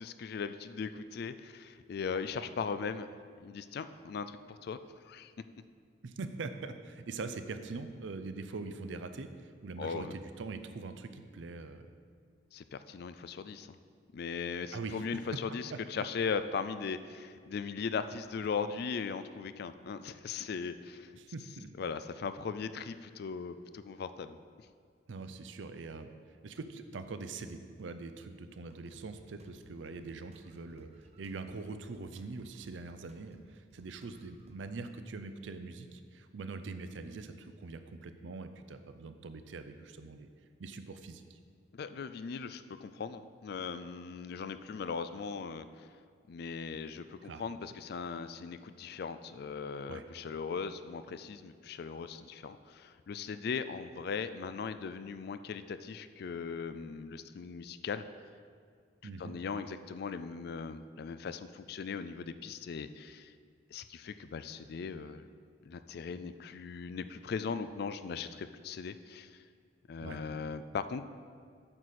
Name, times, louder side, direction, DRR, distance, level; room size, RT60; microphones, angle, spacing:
voice 1, 0.0-3.1 3.4-5.3 9.8-10.1 12.5-13.8 14.1-21.1 21.8-24.4 41.7-45.9 46.3-58.0 59.2-63.3 63.7-65.3 65.7-69.4 69.9-71.0, left 5 dB, 55° left, 12 dB, 0.3 m, -39 dB
voice 2, 6.0-11.9 14.7-15.0 21.2-21.7 25.1-26.1 26.4-40.3 40.6-41.4 47.2-47.4 49.9-50.1 59.0-59.3 70.0-70.2, right 3 dB, 80° right, 9 dB, 0.5 m, -43 dB
sound 1, 28.7-34.6, right 2 dB, 35° right, 0.5 m, -61 dB
8.8 x 6.4 x 4.2 m, 2.1 s
head